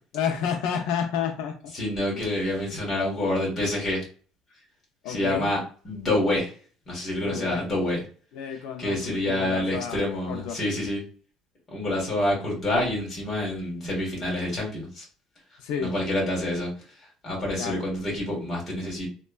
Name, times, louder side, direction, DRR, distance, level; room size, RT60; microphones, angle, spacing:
voice 1, 0.1-1.7 2.2-2.4 5.0-5.5 7.2-7.6 8.3-10.6 15.6-15.9 17.6-17.8, left 8 dB, 75° left, 3 dB, 0.4 m, -31 dB
voice 2, 1.7-4.0 5.1-6.5 6.9-8.0 8.8-11.0 11.7-15.0 15.8-16.7 17.2-19.1, left 1 dB, 20° left, -3 dB, 1.3 m, -27 dB
2.9 x 2.2 x 2.3 m, 0.40 s
cardioid pair, 175°, 0 cm